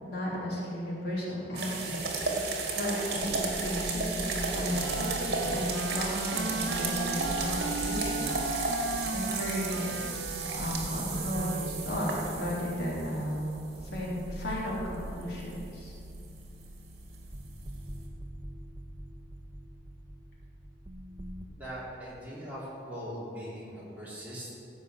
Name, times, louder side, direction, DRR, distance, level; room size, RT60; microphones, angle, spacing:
voice 1, 0.0-10.1 10.5-12.1 12.4-15.9, equal, 65° left, -5 dB, 3.2 m, -35 dB
sound 1, 1.5-18.0, right 3 dB, 60° right, 2.1 m, -34 dB
sound 2, 2.0-21.4, equal, 30° right, 0.7 m, -42 dB
Wind instrument woodwind instrument, 4.6-12.0, right 4 dB, 85° right, 0.6 m, -37 dB
voice 2, 21.5-24.5, equal, 10° right, -8 dB, 3.2 m, -41 dB
15.5 x 5.5 x 7.9 m, 2.7 s
head